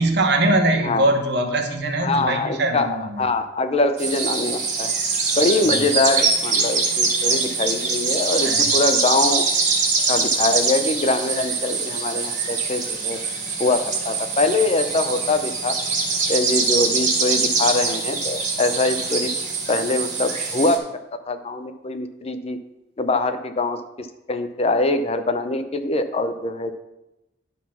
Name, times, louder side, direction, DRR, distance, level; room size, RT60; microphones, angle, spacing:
voice 1, 0.0-3.2 5.7-5.8 8.4-8.6, right 2 dB, 60° right, 4 dB, 1.2 m, -21 dB
voice 2, 0.8-1.1 2.0-4.9 5.4-9.5 10.1-13.2 13.6-15.7 16.3-19.3 19.7-20.8 21.3-22.6 23.0-26.8, left 2 dB, 30° left, 9 dB, 0.5 m, -23 dB
sound 1, 4.0-20.8, right 4 dB, 40° right, 1.8 m, -23 dB
11.5 x 4.1 x 5.8 m, 0.94 s
head